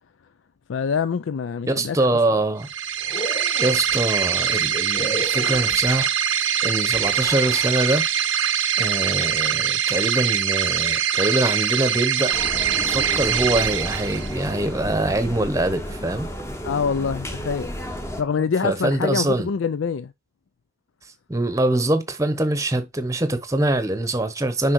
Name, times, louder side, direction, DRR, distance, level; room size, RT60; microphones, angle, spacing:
voice 1, 0.7-2.2 16.6-17.8 18.2-20.1, left 6 dB, 75° left, 0.4 m, -25 dB
voice 2, 1.7-2.7 3.6-6.1 6.6-8.0 8.8-12.3 12.7-16.3 18.4-19.5 21.3-24.7, right 1 dB, 15° right, 0.8 m, -23 dB
sound 1, 2.6-14.5, right 8 dB, 75° right, 0.7 m, -23 dB
sound 2, 3.0-4.0 4.9-6.0 6.9-7.9, equal, 35° left, 1.9 m, -34 dB
sound 3, 12.3-18.2, equal, 15° left, 0.8 m, -32 dB
6.3 x 5.2 x 4.6 m
head